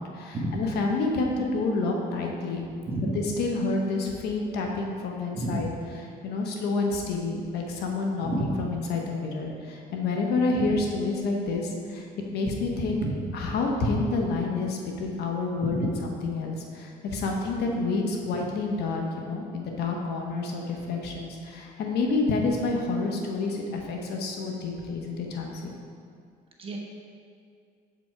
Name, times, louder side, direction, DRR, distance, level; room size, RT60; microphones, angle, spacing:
voice 1, 0.0-2.6 3.0-5.7 6.2-12.1 12.3-13.0 13.3-25.7, left 3 dB, 75° left, 1 dB, 1.1 m, -28 dB
voice 2, 2.9-3.2 5.3-5.6 8.2-8.5 12.9-13.1 15.6-15.9 26.6-26.8, right 2 dB, 35° right, -1 dB, 1.2 m, -30 dB
7.2 x 5.2 x 4.5 m, 2.3 s
cardioid pair, 110°, 17 cm